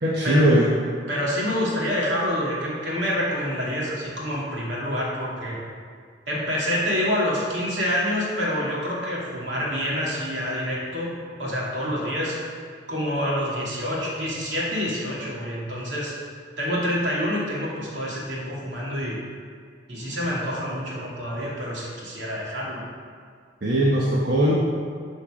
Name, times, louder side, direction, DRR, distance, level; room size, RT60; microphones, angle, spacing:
voice 1, 0.0-0.7 23.6-24.5, right 1 dB, 60° right, -5 dB, 1.1 m, -19 dB
voice 2, 1.1-5.6 6.3-11.1 11.4-12.4 12.9-16.1 16.6-19.2 19.9-22.8, equal, 75° right, -5 dB, 2.6 m, -27 dB
12.5 x 4.6 x 5.0 m, 2.1 s
head